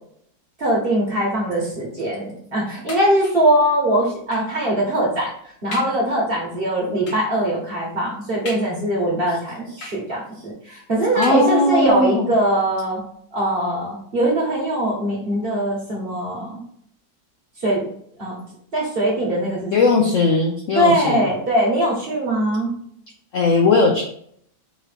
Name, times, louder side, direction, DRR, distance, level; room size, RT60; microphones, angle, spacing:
voice 1, 0.6-5.3 5.6-13.0 13.3-16.6 17.6-17.8 18.2-18.4 18.7-19.8 20.7-22.7, right 1 dB, 35° right, -4 dB, 1.2 m, -21 dB
sound 1, 2.9-3.6 4.3-4.6 5.2-5.3 5.7-6.1 7.1-7.4 8.5-9.1 9.8-10.4 11.2-11.9 12.7-12.8 13.1-13.2, left 2 dB, 50° left, 1.2 m, -38 dB
voice 2, 11.1-12.3 19.7-21.2 23.3-24.0, left 3 dB, 75° left, 1 dB, 0.7 m, -18 dB
4.8 x 3.0 x 3.4 m, 0.66 s
omnidirectional pair, 2.1 m